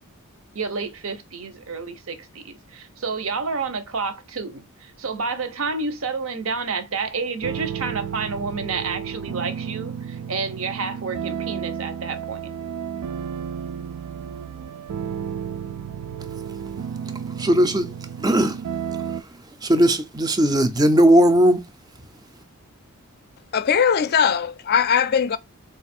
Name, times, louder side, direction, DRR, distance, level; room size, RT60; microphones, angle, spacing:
voice 1, 0.5-12.4, right 4 dB, 65° right, 0.7 m, -29 dB
sound 1, 7.4-19.2, right 8 dB, 85° right, 0.3 m, -32 dB
voice 2, 17.4-17.9 18.2-18.6 19.6-21.6, right 1 dB, 15° right, 0.4 m, -17 dB
voice 3, 23.5-25.4, left 7 dB, 45° left, 0.4 m, -20 dB
3.9 x 2.4 x 4.2 m
head